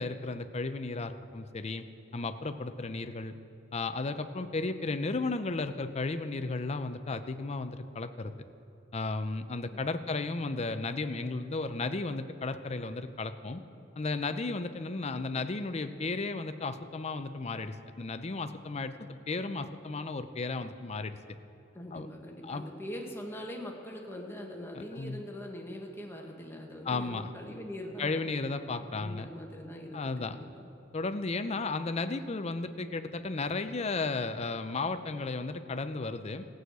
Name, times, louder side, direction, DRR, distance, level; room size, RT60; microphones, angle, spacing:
voice 1, 0.0-1.8 2.1-3.3 3.7-8.3 8.9-13.6 14.0-21.4 21.9-22.1 22.4-22.6 24.7-25.2 26.8-27.3 28.0-29.3 29.9-30.4 30.9-36.4, left 3 dB, 35° left, 10 dB, 0.5 m, -34 dB
voice 2, 21.7-28.2 28.8-30.7, equal, 15° left, 0 dB, 1.4 m, -42 dB
16.0 x 6.4 x 8.0 m, 2.9 s
head